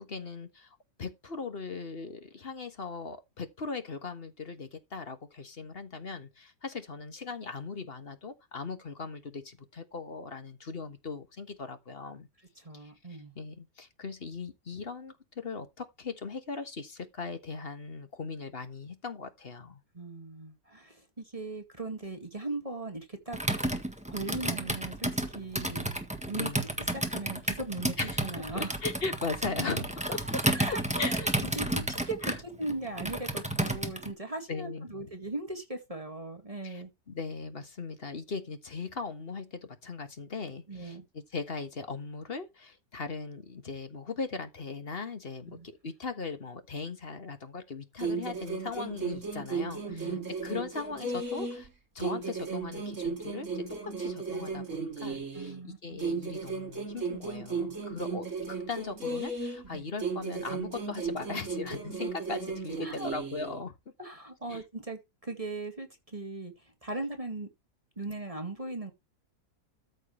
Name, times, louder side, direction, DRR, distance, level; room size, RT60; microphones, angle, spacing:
voice 1, 0.0-12.3 12.7-19.8 26.4-26.6 28.0-28.3 28.5-30.4 30.9-31.3 32.2-32.4 34.5-35.1 36.6-41.0 41.3-51.7 51.9-63.7 64.5-64.6, left 4 dB, 40° left, 1.5 m, -39 dB
voice 2, 12.6-13.3 19.9-23.4 24.1-25.1 25.3-25.9 26.3-26.5 26.9-28.0 28.2-28.7 30.5-31.3 31.6-36.9 40.7-41.0 45.5-45.7 49.8-50.3 55.3-56.0 59.7-59.8 62.8-63.1 64.0-67.5 68.0-68.9, right 2 dB, 20° right, 2.1 m, -38 dB
Computer keyboard, 23.3-34.1, right 1 dB, 5° right, 1.5 m, -32 dB
sound 1, 48.0-51.7 52.0-55.6 56.0-59.7 60.0-63.6, right 4 dB, 50° right, 2.6 m, -35 dB
14.0 x 6.2 x 3.2 m
omnidirectional pair, 1.7 m